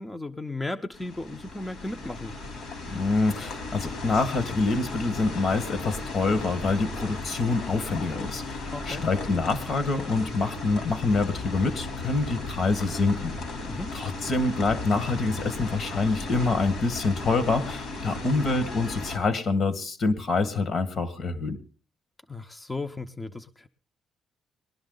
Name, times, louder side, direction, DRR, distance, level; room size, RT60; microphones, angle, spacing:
voice 1, 0.0-2.4 8.7-9.1 13.7-13.9 22.3-23.7, left 2 dB, 15° left, 6 dB, 0.7 m, -35 dB
sound 1, 0.9-19.2, left 2 dB, 75° left, 3.6 m, -36 dB
voice 2, 2.9-13.4 13.9-21.6, left 3 dB, 55° left, 13 dB, 1.7 m, -26 dB
19.5 x 11.5 x 3.9 m, 0.36 s
cardioid pair, 90°, 0 cm